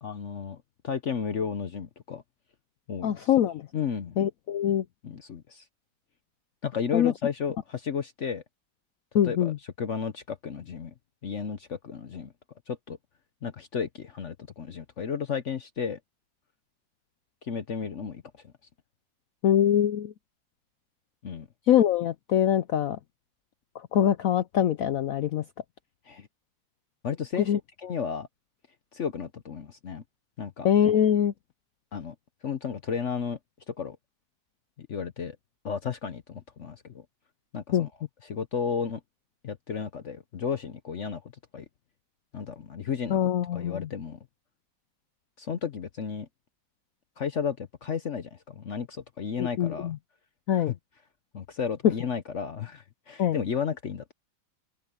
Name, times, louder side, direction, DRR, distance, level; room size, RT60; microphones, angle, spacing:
voice 1, 0.0-2.2 2.9-3.2 3.7-4.2 5.0-5.6 6.6-8.4 9.2-10.9 11.2-12.3 12.7-13.0 13.4-16.0 17.4-18.2 21.2-21.5 26.1-26.3 27.0-27.5 27.8-28.3 28.9-30.0 30.4-30.7 31.9-32.1 32.4-33.4 33.7-34.0 34.8-35.4 35.6-37.0 37.5-37.9 38.2-39.0 39.4-41.2 41.5-41.6 42.3-43.2 43.5-44.2 45.4-46.3 47.2-49.9 50.7-50.8 51.3-54.1, left 6 dB, 55° left, 0.9 m, -33 dB
voice 2, 3.0-3.7 4.2-4.8 6.9-7.1 9.1-9.6 19.4-20.1 21.7-23.0 23.9-25.4 27.5-27.6 30.6-31.3 37.7-37.9 43.1-43.9 49.4-50.0 50.5-50.7 53.2-53.4, left 10 dB, 90° left, 0.7 m, -23 dB
open air
omnidirectional pair, 2.2 m